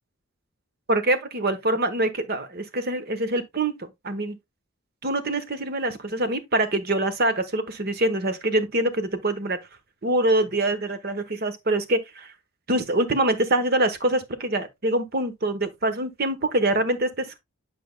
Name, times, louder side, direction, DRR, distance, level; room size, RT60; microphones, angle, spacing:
voice 1, 0.9-4.4 5.0-9.6 10.0-12.3 12.7-17.4, right 1 dB, 45° right, 1.0 m, -25 dB
10.0 x 5.3 x 2.2 m
head